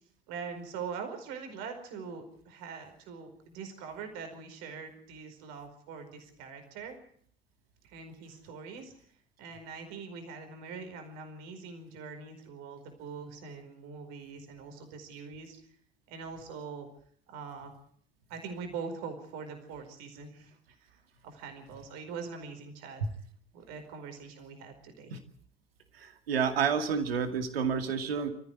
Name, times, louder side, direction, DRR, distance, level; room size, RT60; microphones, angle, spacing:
voice 1, 0.3-7.0 7.8-8.9 9.4-15.5 16.1-16.9 17.3-17.7 18.3-23.0 23.5-25.1, right 5 dB, 65° right, 6 dB, 4.9 m, -43 dB
voice 2, 26.0-28.3, right 6 dB, 80° right, 6 dB, 2.3 m, -29 dB
26.5 x 15.0 x 8.4 m, 0.62 s
figure-of-eight pair, 55°, 30 cm